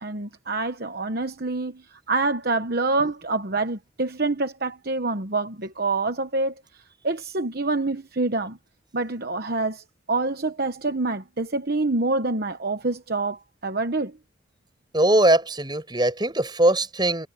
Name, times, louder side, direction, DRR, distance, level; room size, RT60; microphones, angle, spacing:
voice 1, 0.0-6.5 7.0-8.6 8.9-14.1, right 3 dB, 50° right, 1.1 m, -26 dB
voice 2, 14.9-17.3, right 1 dB, 20° right, 5.7 m, -21 dB
head